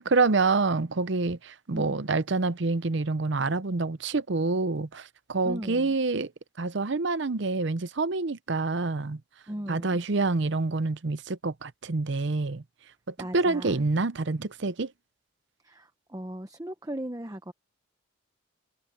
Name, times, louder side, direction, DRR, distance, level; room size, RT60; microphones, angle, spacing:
voice 1, 0.0-6.3 6.6-9.2 9.7-12.6 13.1-14.9, right 3 dB, 60° right, 0.7 m, -27 dB
voice 2, 1.7-2.1 5.4-5.9 9.5-10.0 13.2-13.9 15.6-17.5, right 1 dB, 15° right, 0.8 m, -38 dB
head